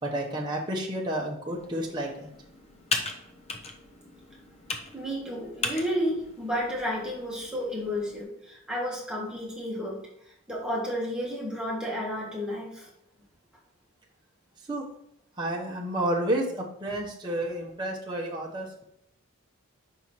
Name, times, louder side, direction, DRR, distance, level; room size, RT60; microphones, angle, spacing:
voice 1, 0.0-2.3 14.7-14.8 15.4-18.8, right 1 dB, 20° right, -3 dB, 1.0 m, -30 dB
Computer keyboard, 1.5-8.2, left 3 dB, 30° left, 0.7 m, -38 dB
voice 2, 4.9-10.0 10.5-12.9, equal, 5° right, -4 dB, 1.7 m, -31 dB
5.6 x 4.5 x 4.5 m, 0.74 s
head